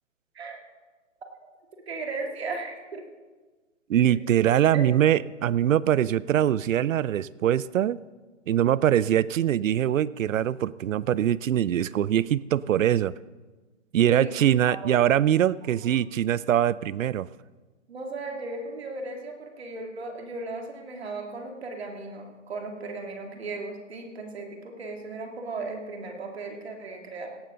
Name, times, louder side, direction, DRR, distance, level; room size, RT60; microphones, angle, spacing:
voice 1, 1.9-3.0 4.1-4.2 4.7-4.8 14.0-14.3 14.6-14.9 15.6-16.1 17.9-27.3, right 3 dB, 55° right, 2 dB, 2.5 m, -36 dB
voice 2, 3.9-8.0 8.5-13.1 13.9-17.3, right 11 dB, 85° right, 20 dB, 0.5 m, -23 dB
17.0 x 12.0 x 3.9 m, 1.3 s
hypercardioid pair, 165°, 38 cm